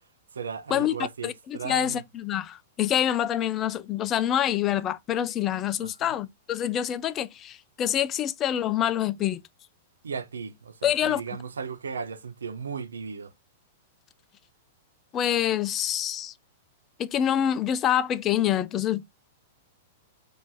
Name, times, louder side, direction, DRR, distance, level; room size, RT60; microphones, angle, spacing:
voice 1, 0.3-2.0 5.8-6.2 10.0-13.3, right 5 dB, 85° right, 0.6 m, -36 dB
voice 2, 1.2-9.4 10.8-11.2 15.1-16.3 17.0-19.0, left 10 dB, 30° left, 0.4 m, -26 dB
2.9 x 2.6 x 3.7 m
hypercardioid pair, 115°, 0 cm